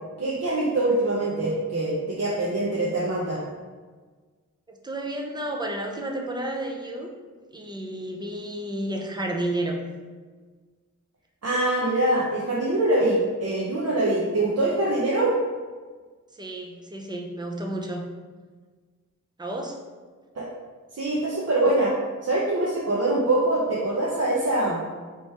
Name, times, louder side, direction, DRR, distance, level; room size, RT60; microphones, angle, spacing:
voice 1, 0.2-3.4 11.4-15.3 20.3-20.5 20.9-21.9 22.2-24.8, right 2 dB, 55° right, -6 dB, 0.8 m, -24 dB
voice 2, 4.8-7.1 7.5-9.8 16.3-18.0 19.4-19.8, right 1 dB, 15° right, 1 dB, 0.6 m, -31 dB
4.3 x 3.1 x 3.3 m, 1.4 s
wide cardioid pair, 60°, 31 cm